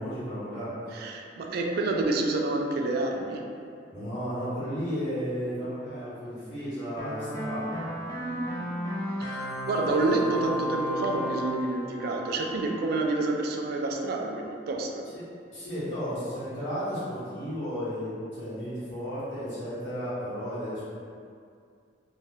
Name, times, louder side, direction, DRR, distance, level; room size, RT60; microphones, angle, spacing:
voice 1, 0.0-0.7 3.9-7.8 15.5-20.8, equal, 80° left, -12 dB, 1.2 m, -33 dB
voice 2, 0.9-3.6 8.2-8.8 9.2-15.1, right 2 dB, 60° right, 2 dB, 0.3 m, -29 dB
sound 1, 7.0-13.1, equal, 20° left, 0.4 m, -34 dB
2.6 x 2.2 x 3.2 m, 2.3 s
head